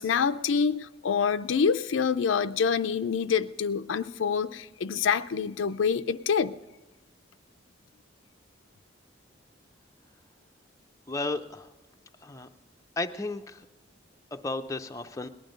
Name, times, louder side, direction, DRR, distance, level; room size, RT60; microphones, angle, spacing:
voice 1, 0.0-6.6, left 6 dB, 80° left, 11 dB, 0.5 m, -26 dB
voice 2, 11.1-11.6 12.2-12.5 13.0-13.4 14.3-15.3, left 2 dB, 15° left, 6 dB, 0.5 m, -33 dB
18.5 x 10.5 x 5.2 m, 1.0 s
head